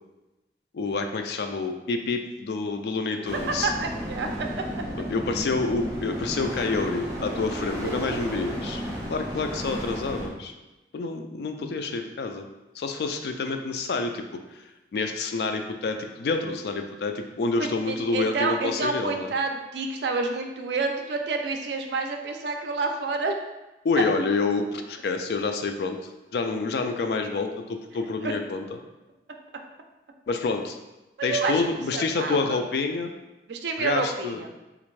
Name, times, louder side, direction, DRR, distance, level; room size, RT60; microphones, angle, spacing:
voice 1, 0.7-3.7 5.1-8.8 9.1-10.5 10.9-12.5 12.7-14.4 14.9-19.3 23.8-26.0 26.3-28.7 30.3-30.8 31.2-33.1 33.8-34.4, left 3 dB, 60° left, 6 dB, 0.3 m, -28 dB
sound 1, 3.3-10.3, equal, 15° right, 0.6 m, -33 dB
voice 2, 3.6-4.8 7.8-8.0 17.6-23.4 24.0-24.1 28.2-28.3 31.2-31.6 31.9-32.6 33.5-34.5, right 3 dB, 70° right, 4 dB, 0.4 m, -29 dB
3.4 x 2.5 x 3.1 m, 1.0 s
head